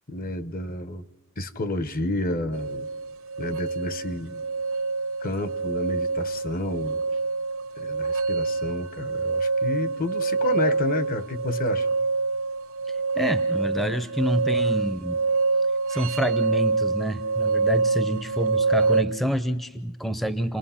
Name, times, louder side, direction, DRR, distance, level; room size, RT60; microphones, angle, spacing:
voice 1, 0.1-1.1 1.4-2.9 3.4-4.4 5.2-7.0 7.8-11.9, left 2 dB, 45° left, 12 dB, 1.0 m, -30 dB
sound 1, 2.5-19.0, right 4 dB, 75° right, 0.9 m, -26 dB
voice 2, 12.9-15.2 15.9-20.6, equal, ahead, 11 dB, 0.6 m, -27 dB
29.0 x 20.0 x 5.7 m, 1.2 s
head